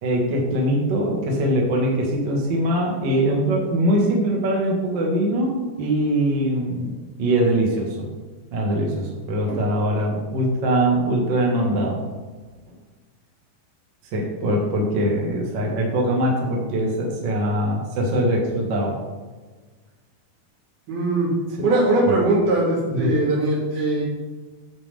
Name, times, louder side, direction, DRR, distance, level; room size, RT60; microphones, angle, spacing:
voice 1, 0.0-6.9 7.2-8.1 8.5-12.0 14.1-19.0 22.9-23.2, right 1 dB, 45° right, -2 dB, 1.6 m, -22 dB
voice 2, 20.9-21.3 21.6-24.0, right 2 dB, 80° right, -5 dB, 4.5 m, -20 dB
11.0 x 7.5 x 3.5 m, 1.3 s
omnidirectional pair, 4.3 m